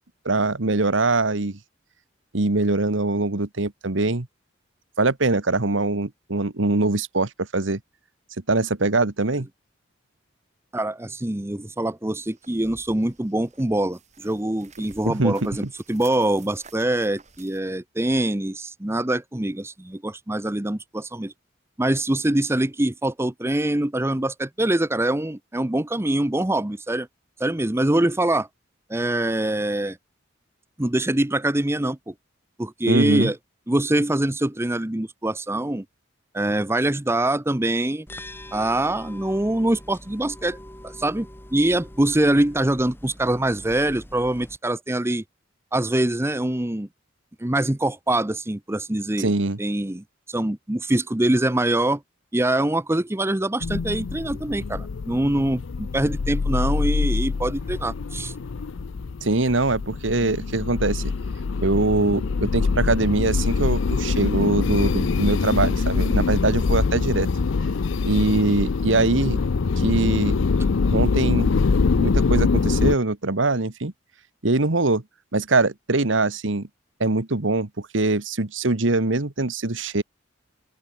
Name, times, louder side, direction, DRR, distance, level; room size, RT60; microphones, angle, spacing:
voice 1, 0.2-1.6 2.3-4.3 5.0-7.8 8.5-9.5 15.0-15.5 32.8-33.3 49.2-49.6 59.2-61.1 61.6-67.3 68.1-69.4 69.8-70.4 70.9-71.6 72.0-73.9 74.4-75.0 75.3-76.7 77.0-80.0, right 2 dB, 70° right, 1.5 m, -22 dB
voice 2, 10.7-21.3 21.8-27.1 27.4-28.5 28.9-30.0 30.8-32.1 32.6-33.4 33.7-35.8 36.3-38.1 38.5-40.6 40.8-45.2 45.7-46.9 47.4-49.3 49.6-52.0 52.3-58.3, right 1 dB, 15° right, 0.7 m, -24 dB
sound 1, 12.2-17.6, right 4 dB, 35° right, 7.2 m, -51 dB
sound 2, 38.1-44.6, left 1 dB, 10° left, 4.9 m, -43 dB
sound 3, 53.6-73.0, left 4 dB, 70° left, 0.5 m, -24 dB
open air
head